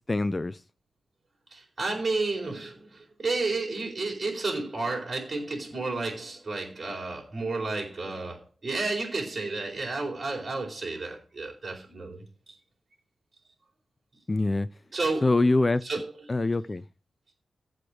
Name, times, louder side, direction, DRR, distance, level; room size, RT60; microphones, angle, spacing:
voice 1, 0.1-0.6 14.3-14.7 15.2-15.8 16.3-16.8, left 2 dB, 20° left, 0.5 m, -24 dB
voice 2, 1.5-12.5 14.9-15.4 15.8-16.3, right 3 dB, 35° right, 4.4 m, -32 dB
15.0 x 5.2 x 6.2 m
wide cardioid pair, 170°, 0 cm